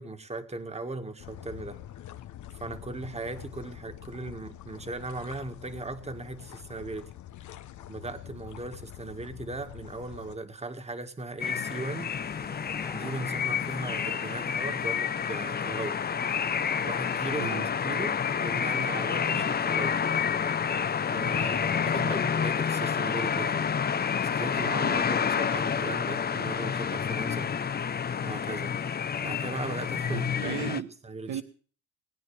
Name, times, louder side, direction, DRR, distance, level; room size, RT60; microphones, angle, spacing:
voice 1, 0.0-1.8 2.5-7.1 7.9-12.1 12.9-16.0 16.8-20.0 21.1-23.7 24.2-27.5 28.2-28.8 29.2-30.5 31.0-31.4, right 2 dB, 20° right, 1.9 m, -38 dB
Lakeside ambience, 1.2-10.4, left 12 dB, 75° left, 1.1 m, -45 dB
sound 1, 11.4-30.8, left 7 dB, 30° left, 0.7 m, -29 dB
sound 2, 11.9-23.7, left 2 dB, 10° left, 1.8 m, -53 dB
voice 2, 17.4-17.7 22.0-22.2 30.1-30.9 31.3-31.4, right 8 dB, 75° right, 1.4 m, -35 dB
20.0 x 9.5 x 7.2 m
cardioid pair, 90°, 30 cm